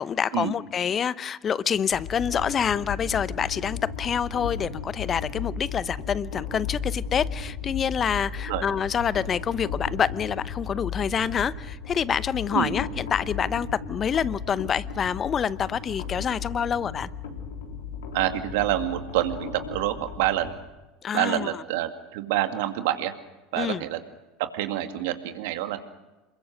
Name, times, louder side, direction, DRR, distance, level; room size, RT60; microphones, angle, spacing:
voice 1, 0.0-17.1 21.0-21.6 23.6-23.8, left 7 dB, 35° left, 18 dB, 0.8 m, -27 dB
sound 1, 1.9-20.6, left 6 dB, 80° left, 3.6 m, -35 dB
voice 2, 18.1-20.5 21.1-23.1 23.5-24.0 24.4-25.8, right 13 dB, 70° right, 7 dB, 2.2 m, -27 dB
27.5 x 22.5 x 6.5 m, 1.1 s
hypercardioid pair, 80°, 0 cm